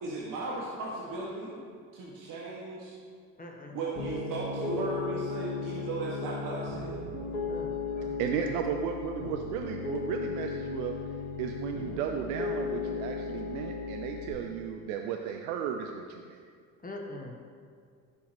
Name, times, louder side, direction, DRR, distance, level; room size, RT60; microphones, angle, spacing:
voice 1, 0.0-1.6 1.9-2.9 3.7-7.0, right 2 dB, 45° right, -5 dB, 1.9 m, -36 dB
voice 2, 3.4-3.8 7.5-8.5 16.8-17.3, left 2 dB, 20° left, 1 dB, 1.6 m, -43 dB
sound 1, 3.9-14.5, right 3 dB, 20° right, 2.0 m, -48 dB
Piano, 4.0-14.3, left 5 dB, 85° left, 1.3 m, -36 dB
voice 3, 8.2-10.9 11.4-16.4, right 8 dB, 65° right, 4 dB, 0.7 m, -34 dB
15.5 x 7.2 x 3.1 m, 2.1 s
figure-of-eight pair, 60°, 46 cm